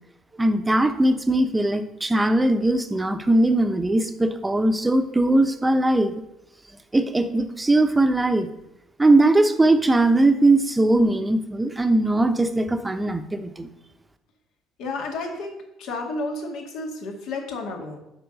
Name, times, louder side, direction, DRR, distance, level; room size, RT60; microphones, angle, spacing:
voice 1, 0.4-6.1 6.9-8.5 9.0-13.7, right 2 dB, 15° right, 7 dB, 0.9 m, -20 dB
voice 2, 14.8-18.0, left 2 dB, 65° left, 2 dB, 1.9 m, -31 dB
7.9 x 6.1 x 6.3 m, 0.87 s
hypercardioid pair, 55°, 0 cm